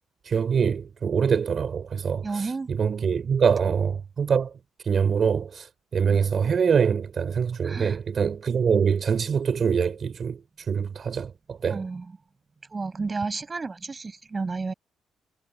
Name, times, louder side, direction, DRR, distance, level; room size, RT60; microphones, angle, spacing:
voice 1, 0.2-4.5 4.8-11.8, right 6 dB, 50° right, 4.3 m, -24 dB
voice 2, 2.2-2.7 6.0-6.3 7.6-8.0 11.7-12.1 12.7-14.7, right 4 dB, 30° right, 7.0 m, -32 dB
cardioid pair, 90°, 0 cm